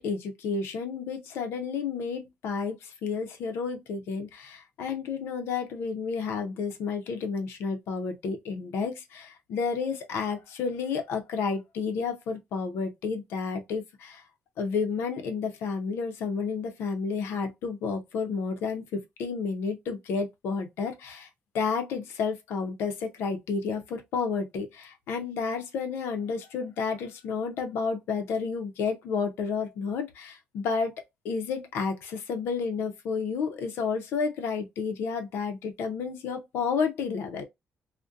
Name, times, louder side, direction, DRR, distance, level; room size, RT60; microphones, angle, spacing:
voice 1, 0.0-14.2 14.6-21.3 21.5-30.9 31.2-37.4, left 5 dB, 80° left, 0.5 m, -31 dB
2.6 x 2.1 x 2.4 m
cardioid pair, 120°, 4 cm